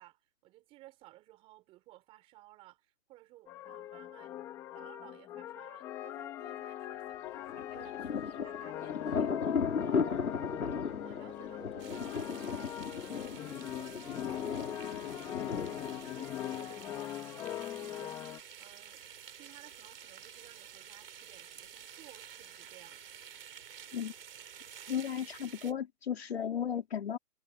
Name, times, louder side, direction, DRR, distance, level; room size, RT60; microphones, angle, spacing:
voice 1, 0.0-4.4 4.7-23.0, right 17 dB, 10° right, 5.1 m, -58 dB
sound 1, 3.5-18.4, left 12 dB, 5° left, 1.5 m, -42 dB
Thunder, 7.5-17.0, left 6 dB, 70° left, 4.3 m, -36 dB
sound 2, 11.8-25.7, right 8 dB, 40° right, 3.9 m, -51 dB
voice 2, 24.9-27.2, left 8 dB, 45° left, 2.8 m, -35 dB
hypercardioid pair, 170°, 44 cm